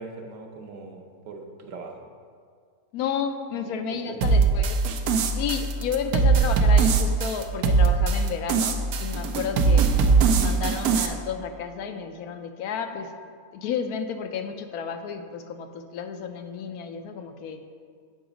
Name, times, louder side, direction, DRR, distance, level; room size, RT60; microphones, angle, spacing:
voice 1, 0.0-2.0 3.7-3.8 4.0-4.3, right 3 dB, 65° right, 2 dB, 1.1 m, -40 dB
voice 2, 2.9-4.8 5.4-9.9 10.2-13.1 13.5-17.6, left 7 dB, 85° left, 6 dB, 1.1 m, -32 dB
sound 1, 4.2-11.1, right 4 dB, 90° right, 1.1 m, -21 dB
8.0 x 4.7 x 5.0 m, 2.1 s
omnidirectional pair, 1.6 m